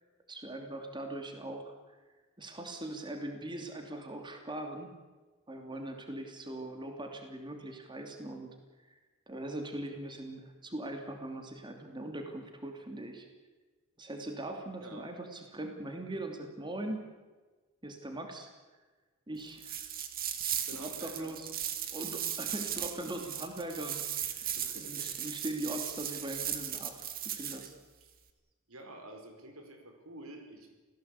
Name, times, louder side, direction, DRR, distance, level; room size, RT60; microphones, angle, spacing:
voice 1, 0.3-1.7 2.4-4.9 5.5-8.5 9.3-13.3 14.0-17.1 17.8-18.5 19.3-19.8 20.7-21.5 21.9-24.5 24.8-27.7, right 1 dB, 20° right, 4 dB, 2.8 m, -41 dB
voice 2, 14.8-15.2 20.7-21.3 24.5-25.2 28.0-28.1 28.7-30.7, right 1 dB, 85° right, 5 dB, 4.8 m, -49 dB
sound 1, 19.6-27.7, right 10 dB, 45° right, 2.1 m, -37 dB
28.0 x 17.5 x 8.4 m, 1.3 s
head